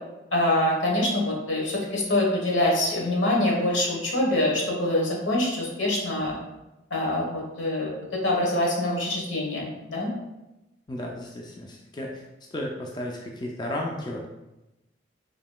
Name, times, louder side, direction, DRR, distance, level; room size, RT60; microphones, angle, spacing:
voice 1, 0.3-6.3 6.9-10.1, left 1 dB, 85° left, -2 dB, 1.1 m, -25 dB
voice 2, 10.9-12.2 12.5-14.3, left 1 dB, 20° left, -1 dB, 0.3 m, -33 dB
5.0 x 2.9 x 2.2 m, 0.98 s
head